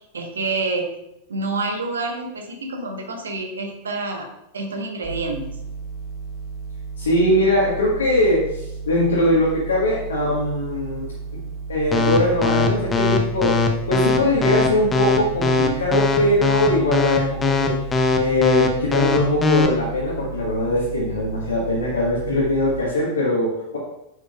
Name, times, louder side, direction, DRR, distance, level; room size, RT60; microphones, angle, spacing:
voice 1, 0.1-0.9 1.3-4.3 4.5-5.5, right 3 dB, 70° right, 4 dB, 1.3 m, -27 dB
sound 1, 5.0-22.8, right 5 dB, 30° right, 1.2 m, -34 dB
voice 2, 7.0-11.1 11.7-13.6 13.9-17.8 18.2-23.8, left 1 dB, 70° left, -5 dB, 1.6 m, -21 dB
sound 2, 11.9-19.7, left 4 dB, 15° left, 0.9 m, -19 dB
9.5 x 6.7 x 2.4 m, 0.85 s
figure-of-eight pair, 90°, 0 cm